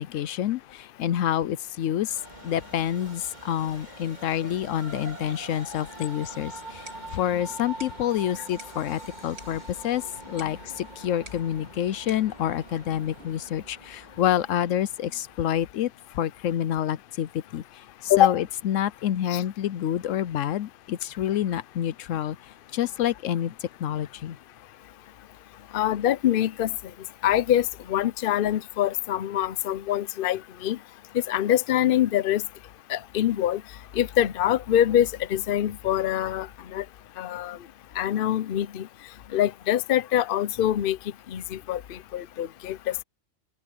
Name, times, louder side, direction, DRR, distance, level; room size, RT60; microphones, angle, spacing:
voice 1, 0.0-2.1 2.4-6.8 7.1-15.9 16.1-17.6 18.0-22.4 22.7-23.5 23.8-24.4, left 11 dB, 80° left, 1.0 m, -28 dB
Train, 2.0-15.5, right 2 dB, 35° right, 2.5 m, -44 dB
sound 1, 6.5-13.5, right 2 dB, 55° right, 4.5 m, -53 dB
voice 2, 25.7-26.7 27.2-30.8 31.3-32.4 32.9-33.6 33.9-36.5 36.7-36.8 37.2-37.6 38.0-38.9 39.3-41.0 41.3-43.0, left 11 dB, 55° left, 0.8 m, -24 dB
open air
omnidirectional pair, 1.3 m